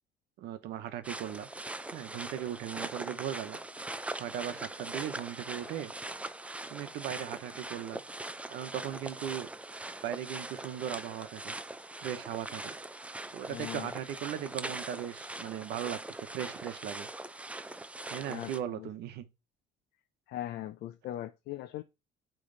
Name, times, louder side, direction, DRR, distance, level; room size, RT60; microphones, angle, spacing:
voice 1, 0.4-1.5 1.9-3.6 4.1-5.9 6.7-8.0 8.5-9.5 10.0-11.6 12.0-12.7 13.3-17.1 18.1-19.3, right 10 dB, 80° right, 1.0 m, -38 dB
sound 1, 1.0-18.6, right 2 dB, 10° right, 0.4 m, -41 dB
voice 2, 13.5-13.9 18.3-18.9 20.3-21.8, left 13 dB, 75° left, 0.6 m, -40 dB
8.7 x 3.3 x 3.9 m
cardioid pair, 110°, 17 cm